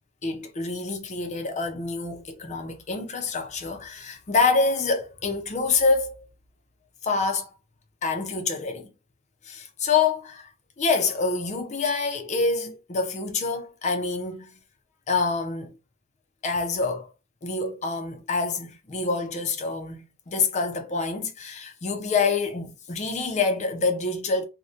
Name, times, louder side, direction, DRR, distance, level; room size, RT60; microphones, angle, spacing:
voice 1, 0.2-6.3 7.0-7.5 8.0-8.9 9.4-10.5 10.8-14.5 15.1-15.7 16.4-17.1 17.4-24.5, left 4 dB, 35° left, 0.5 m, -26 dB
2.5 x 2.1 x 2.6 m
head